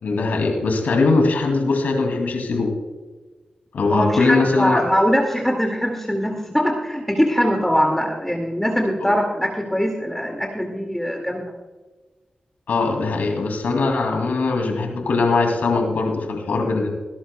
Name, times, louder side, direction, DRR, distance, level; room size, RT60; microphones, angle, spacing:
voice 1, 0.0-2.7 3.7-4.8 9.0-9.1 12.7-16.9, left 3 dB, 90° left, 2 dB, 2.6 m, -21 dB
voice 2, 3.9-11.5, equal, 5° left, 1 dB, 2.1 m, -22 dB
22.5 x 11.5 x 2.3 m, 1.2 s
cardioid pair, 45°, 3 cm